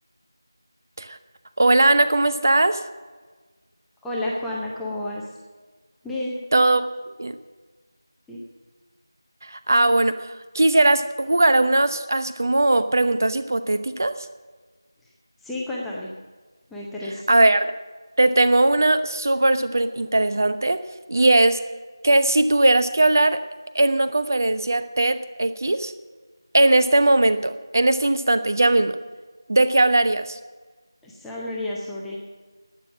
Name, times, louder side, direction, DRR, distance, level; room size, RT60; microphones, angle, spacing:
voice 1, 1.6-2.8 6.5-6.9 7.2-7.3 9.4-14.3 17.3-17.7 18.2-20.8 21.1-21.6 22.0-23.4 23.7-25.9 26.5-29.0 29.5-30.4, right 2 dB, 45° right, 11 dB, 0.9 m, -19 dB
voice 2, 4.0-5.2 6.0-6.4 8.3-8.4 15.4-16.1 16.7-17.2 31.0-32.2, left 1 dB, ahead, -6 dB, 0.6 m, -30 dB
12.0 x 9.5 x 7.3 m, 1.4 s
figure-of-eight pair, 175°, 2 cm